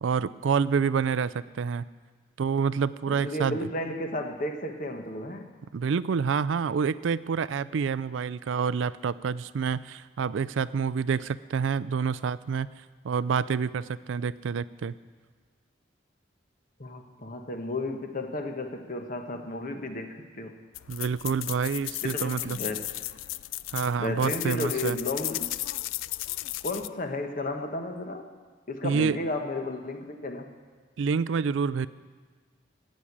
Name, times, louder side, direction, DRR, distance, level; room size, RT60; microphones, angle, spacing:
voice 1, 0.0-1.8 2.4-3.6 5.7-12.7 13.0-14.9 20.9-22.6 23.7-25.0 28.8-29.2 31.0-31.9, right 6 dB, 80° right, 17 dB, 0.4 m, -27 dB
voice 2, 3.1-5.5 16.8-20.6 22.0-22.8 24.0-25.5 26.6-28.3 28.7-30.5, left 1 dB, 45° left, 5 dB, 1.1 m, -33 dB
sound 1, 20.7-26.9, left 17 dB, 85° left, 0.3 m, -35 dB
16.0 x 6.4 x 8.5 m, 1.5 s
head